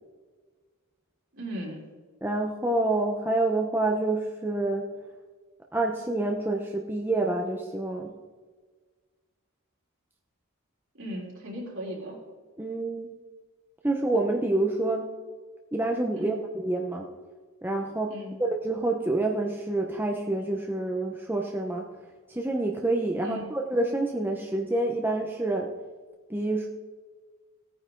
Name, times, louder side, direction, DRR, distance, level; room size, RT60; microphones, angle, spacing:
voice 1, 1.3-1.9 10.9-12.2 16.1-16.4 18.1-18.4 23.2-23.5, equal, 60° right, -2 dB, 3.5 m, -37 dB
voice 2, 2.2-4.9 5.7-8.1 12.6-13.1 13.8-15.1 15.7-17.1 17.6-18.1 18.4-21.8 22.3-25.7 26.3-26.7, right 2 dB, 10° right, 1 dB, 0.8 m, -27 dB
17.0 x 9.3 x 3.8 m, 1.4 s
head